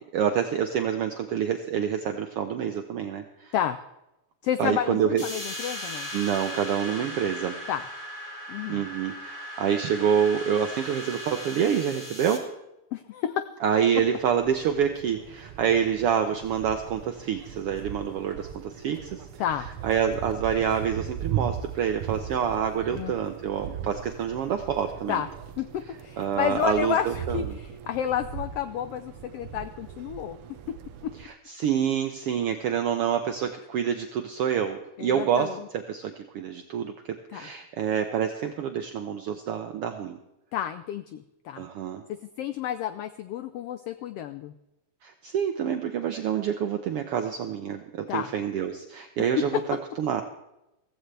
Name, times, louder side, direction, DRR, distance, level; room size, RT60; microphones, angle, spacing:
voice 1, 0.1-3.5 4.6-5.2 6.1-7.6 8.7-12.5 13.6-19.2 19.8-25.2 26.2-27.4 31.2-40.2 41.6-42.0 45.0-50.2, right 8 dB, 70° right, 6 dB, 1.4 m, -27 dB
voice 2, 4.4-6.1 6.9-7.1 7.7-7.8 8.5-8.8 12.9-13.5 19.4-19.7 22.9-23.1 25.1-25.3 25.6-30.4 30.7-30.8 31.0-31.1 35.0-35.7 37.3-37.5 40.5-41.7 42.1-44.5 48.1-48.3, left 10 dB, 85° left, 11 dB, 1.3 m, -31 dB
sound 1, 5.2-12.4, equal, 15° left, 1.6 m, -38 dB
sound 2, 13.9-31.3, right 9 dB, 90° right, 1.2 m, -38 dB
15.5 x 15.5 x 3.3 m, 0.90 s
omnidirectional pair, 3.3 m